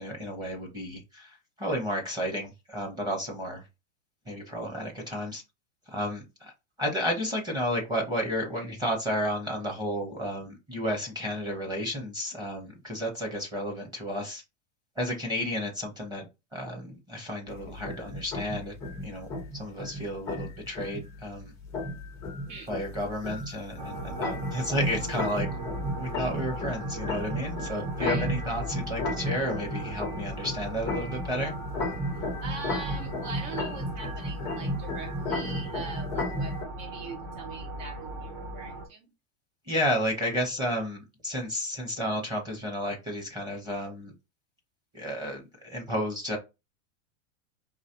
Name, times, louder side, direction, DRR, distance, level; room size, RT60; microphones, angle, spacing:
voice 1, 0.0-3.6 4.3-5.4 5.9-6.5 6.8-14.4 15.0-16.3 16.5-18.7 19.0-21.5 22.7-31.5 39.7-44.1 44.9-46.4, equal, 10° right, 0.8 m, -32 dB
sound 1, 17.5-36.7, left 1 dB, 10° left, 0.3 m, -34 dB
sound 2, 23.8-38.9, right 1 dB, 50° right, 1.4 m, -38 dB
voice 2, 32.4-39.1, right 5 dB, 75° right, 1.9 m, -41 dB
4.8 x 3.1 x 2.8 m
supercardioid pair, 165°, 38 cm